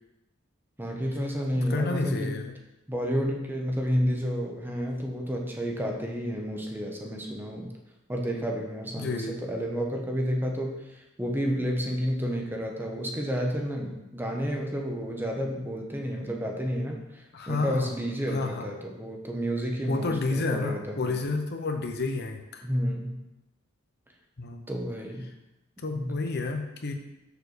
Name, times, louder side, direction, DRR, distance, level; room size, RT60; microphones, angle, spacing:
voice 1, 0.8-2.4 2.9-7.7 8.1-21.2 22.6-23.2 24.7-25.2 25.9-26.2, equal, 10° right, 0 dB, 1.0 m, -31 dB
voice 2, 1.5-2.5 9.0-9.3 17.3-17.9 18.3-18.7 19.9-22.6 24.4-24.7 25.8-26.9, left 3 dB, 55° left, 5 dB, 0.8 m, -30 dB
6.8 x 4.5 x 6.7 m, 0.95 s
head